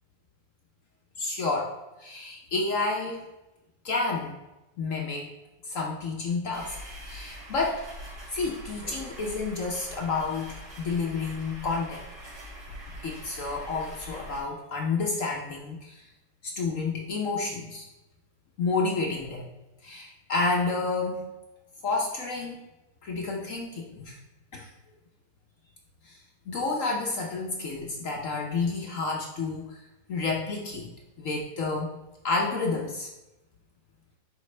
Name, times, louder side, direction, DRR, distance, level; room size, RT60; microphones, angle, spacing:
voice 1, 1.2-3.2 3.8-4.4 4.8-5.3 5.7-6.8 7.1-7.8 8.3-12.0 13.0-16.0 16.4-17.9 18.6-19.4 19.8-21.3 21.8-22.6 23.0-24.2 24.5-24.7 26.0-26.2 26.5-29.8 30.1-31.9 32.2-33.1, left 3 dB, 55° left, 0 dB, 1.0 m, -30 dB
sound 1, 6.5-14.4, equal, 60° right, 2.9 m, -43 dB
10.5 x 4.1 x 3.2 m, 0.99 s
omnidirectional pair, 2.0 m